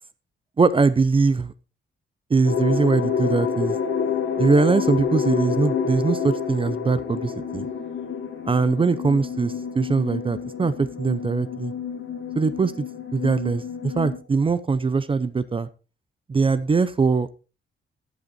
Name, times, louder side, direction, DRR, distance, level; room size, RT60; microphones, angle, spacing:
voice 1, 0.6-1.5 2.3-3.8 4.4-7.7 8.5-11.7 12.3-12.8 13.1-15.7 16.3-17.5, right 4 dB, 25° right, 0.6 m, -22 dB
sound 1, 2.4-14.2, left 6 dB, 70° left, 1.8 m, -28 dB
14.0 x 8.1 x 4.2 m
wide cardioid pair, 155°, 21 cm